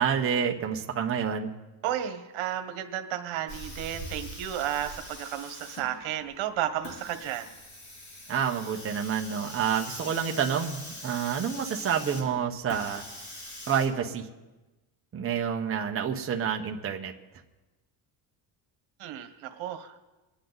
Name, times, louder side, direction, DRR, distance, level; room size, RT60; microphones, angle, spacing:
voice 1, 0.0-1.5 8.3-13.0 13.7-14.3 15.1-17.1, right 7 dB, 30° right, 2 dB, 1.1 m, -28 dB
voice 2, 1.8-7.5 19.0-20.0, right 11 dB, 80° right, 8 dB, 1.4 m, -33 dB
Hiss, 3.5-13.9, left 1 dB, 35° left, 2.9 m, -43 dB
24.5 x 10.0 x 4.0 m, 1.1 s
cardioid pair, 150°, 47 cm